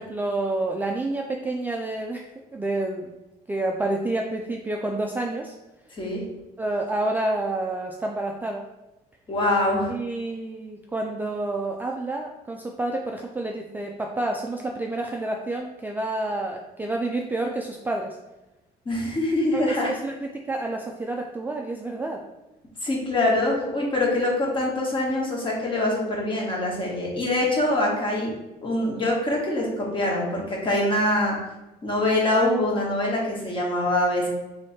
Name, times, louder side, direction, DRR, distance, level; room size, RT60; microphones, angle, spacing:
voice 1, 0.0-3.1 3.5-5.5 6.6-8.6 9.9-18.2 19.5-22.2, right 2 dB, 10° right, 1 dB, 0.3 m, -29 dB
voice 2, 9.3-9.9 18.8-19.9 22.8-28.3 28.6-31.4 31.8-34.3, left 1 dB, 30° left, -3 dB, 1.4 m, -24 dB
3.3 x 3.1 x 4.1 m, 1.0 s
cardioid pair, 110°, 17 cm